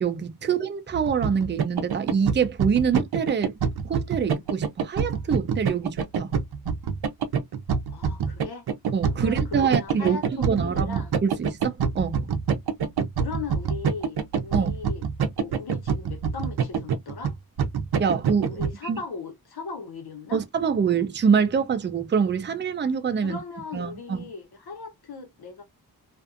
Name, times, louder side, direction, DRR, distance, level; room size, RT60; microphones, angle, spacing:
voice 1, 0.0-3.6 3.8-6.3 8.9-10.2 10.5-12.3 14.5-14.7 18.0-19.0 20.3-23.4 23.7-24.2, right 6 dB, 30° right, 0.4 m, -25 dB
sound 1, 0.9-18.7, right 6 dB, 75° right, 0.6 m, -26 dB
voice 2, 7.9-8.7 9.2-11.1 13.2-15.1 15.4-17.3 18.5-20.4 23.2-25.6, left 4 dB, 80° left, 1.1 m, -38 dB
2.5 x 2.4 x 2.4 m
wide cardioid pair, 140°, 38 cm